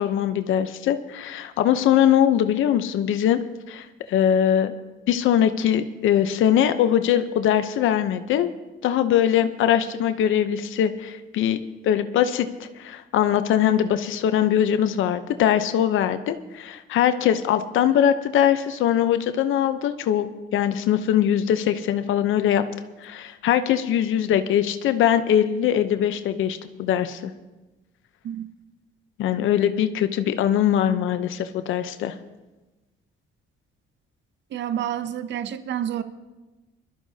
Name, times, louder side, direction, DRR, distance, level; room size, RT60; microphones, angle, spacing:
voice 1, 0.0-3.4 3.7-4.7 5.1-8.5 8.8-22.6 23.0-27.3 29.2-32.1, left 10 dB, 80° left, 10 dB, 0.8 m, -22 dB
voice 2, 34.5-36.0, right 10 dB, 65° right, 11 dB, 0.7 m, -29 dB
21.5 x 13.0 x 2.8 m, 1.1 s
cardioid pair, 90°, 20 cm